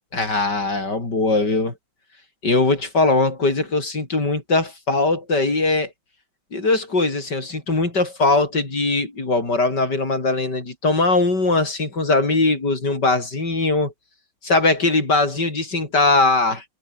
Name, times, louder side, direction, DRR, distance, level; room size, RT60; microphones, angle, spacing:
voice 1, 0.1-1.7 2.4-5.9 6.5-13.9 14.4-16.6, left 3 dB, 60° left, 6.1 m, -20 dB
omnidirectional pair, 2.1 m